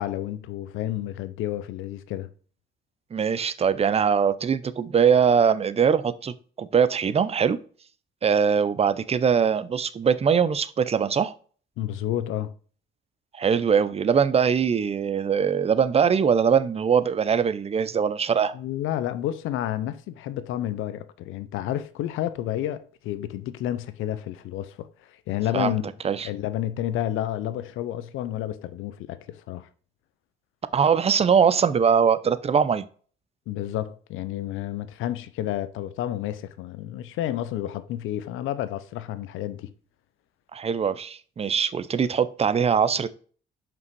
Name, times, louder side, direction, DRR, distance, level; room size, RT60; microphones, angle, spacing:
voice 1, 0.0-2.3 11.8-12.5 18.5-25.9 26.2-29.7 33.5-39.7, left 12 dB, 90° left, 0.6 m, -30 dB
voice 2, 3.1-7.6 8.2-11.3 13.3-18.5 25.5-25.8 26.0-26.3 30.7-32.8 40.5-43.1, right 7 dB, 30° right, 0.5 m, -22 dB
5.7 x 5.3 x 4.6 m
cardioid pair, 90°, 20 cm